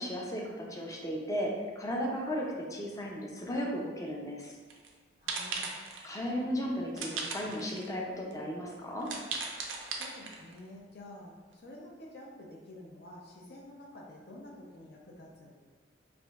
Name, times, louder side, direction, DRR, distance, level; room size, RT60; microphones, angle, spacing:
voice 1, 0.0-4.5 6.0-9.1, equal, 20° left, -2 dB, 0.5 m, -35 dB
sound 1, 4.7-4.9 5.3-6.1 7.0-7.9 8.3-8.4 9.0-10.6, right 4 dB, 85° right, 0.5 m, -37 dB
voice 2, 5.2-5.7 9.9-15.5, left 1 dB, 60° left, -2 dB, 0.7 m, -49 dB
4.8 x 2.6 x 2.4 m, 1.4 s
head